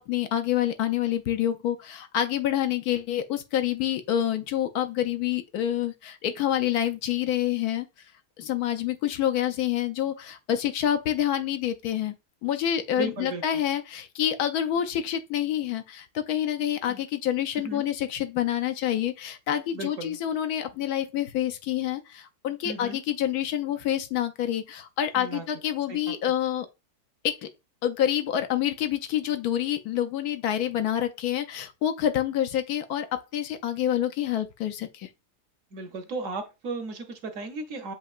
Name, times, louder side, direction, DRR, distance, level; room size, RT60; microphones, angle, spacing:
voice 1, 0.0-7.9 8.4-12.1 12.4-26.7 27.2-27.5 27.8-35.1, left 11 dB, 75° left, 1.1 m, -27 dB
voice 2, 13.0-13.6 16.9-17.0 17.6-17.8 19.7-20.2 22.6-23.0 25.1-25.5 25.9-26.3 35.7-37.9, right 3 dB, 60° right, 1.1 m, -36 dB
7.3 x 2.9 x 2.4 m
omnidirectional pair, 1.7 m